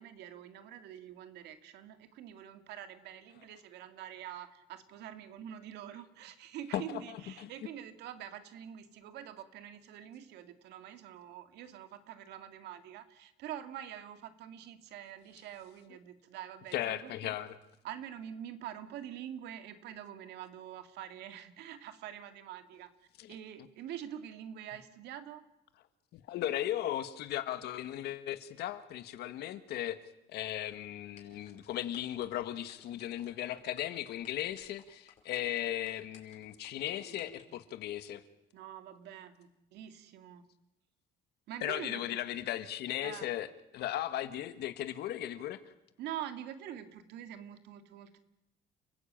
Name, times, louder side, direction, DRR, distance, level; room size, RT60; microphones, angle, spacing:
voice 1, 0.0-17.4 17.8-22.9 23.3-25.4 38.5-40.4 41.5-42.1 43.0-43.3 46.0-48.2, right 10 dB, 80° right, 9 dB, 2.2 m, -45 dB
voice 2, 6.7-7.5 16.7-17.6 23.2-23.3 26.1-30.0 30.3-38.2 41.6-45.6, left 12 dB, 75° left, 11 dB, 1.8 m, -37 dB
sound 1, 31.2-37.4, left 6 dB, 45° left, 5.1 m, -57 dB
30.0 x 15.5 x 8.9 m, 0.87 s
cardioid pair, 110°, 17 cm